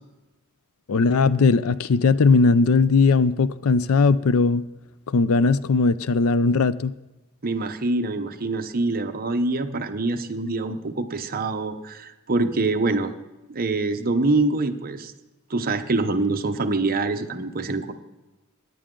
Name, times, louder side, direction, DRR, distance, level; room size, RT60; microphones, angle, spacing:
voice 1, 0.9-4.6 5.1-6.9, left 4 dB, 65° left, 0.5 m, -19 dB
voice 2, 7.4-13.1 13.5-15.1 15.5-17.9, right 2 dB, 40° right, 0.8 m, -25 dB
17.0 x 10.5 x 3.8 m
head